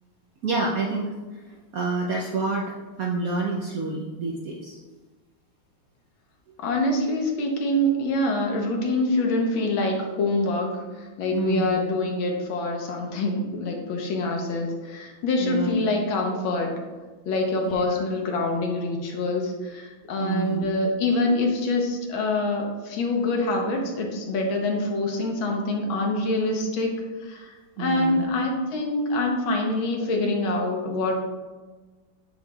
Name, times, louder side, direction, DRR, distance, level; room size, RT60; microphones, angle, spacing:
voice 1, 0.4-1.4 1.7-2.7 3.0-4.8 11.3-11.7 15.4-15.7 17.7-18.0 20.2-20.7 27.8-28.3, right 3 dB, 70° right, -2 dB, 0.8 m, -28 dB
voice 2, 6.6-16.7 17.2-26.9 27.2-31.2, left 2 dB, 75° left, 1 dB, 1.7 m, -25 dB
7.1 x 6.2 x 2.3 m, 1.3 s
omnidirectional pair, 2.2 m